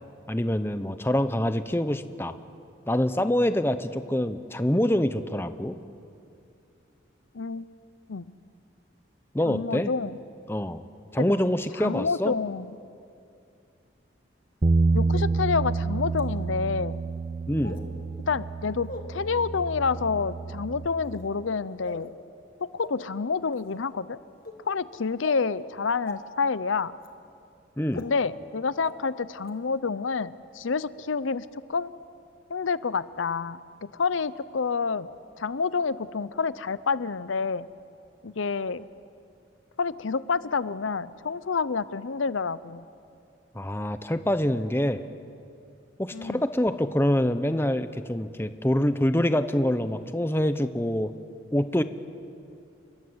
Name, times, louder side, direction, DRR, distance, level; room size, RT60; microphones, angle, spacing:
voice 1, 0.3-2.3 2.9-5.8 9.3-9.9 10.5-10.8 11.1-12.3 17.5-17.8 27.8-28.0 43.5-45.0 46.0-51.1 51.5-51.8, left 1 dB, 10° left, 10 dB, 0.8 m, -25 dB
voice 2, 9.5-10.2 11.2-11.3 11.8-12.7 14.9-17.0 18.3-22.1 22.6-24.2 24.7-26.9 28.0-31.9 32.5-35.1 35.4-37.7 38.2-38.8 39.8-42.8 46.1-46.4, left 5 dB, 85° left, 16 dB, 0.6 m, -28 dB
Bass guitar, 14.6-20.9, right 3 dB, 35° right, 0.6 m, -28 dB
sound 1, 15.1-15.2 16.1-16.2 17.6-17.9 18.8-19.0 19.8-20.0 21.0-21.3 21.9-22.1 22.8-22.9 23.5-23.7 24.4-24.5 25.2-25.4 26.1-26.2 27.0-27.1 27.9-28.0 28.8-28.9 29.4-29.5, left 2 dB, 50° left, 2.0 m, -39 dB
29.0 x 22.0 x 8.0 m, 2.5 s
head